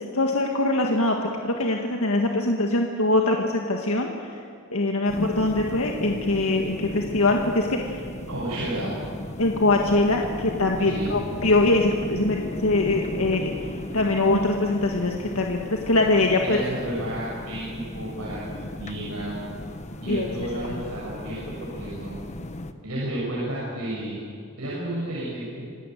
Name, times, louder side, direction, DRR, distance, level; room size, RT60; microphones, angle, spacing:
voice 1, 0.0-4.3 4.7-8.0 9.4-13.5 13.9-16.6 20.1-20.5 20.8-20.9, left 2 dB, 70° left, 1 dB, 1.8 m, -23 dB
sound 1, 5.1-22.7, left 1 dB, 30° left, 1.1 m, -36 dB
voice 2, 8.3-8.9 10.8-11.2 16.4-19.4 20.0-22.2 22.8-24.2 24.6-25.7, right 1 dB, 90° right, -6 dB, 6.8 m, -32 dB
27.0 x 17.5 x 9.3 m, 2.3 s
head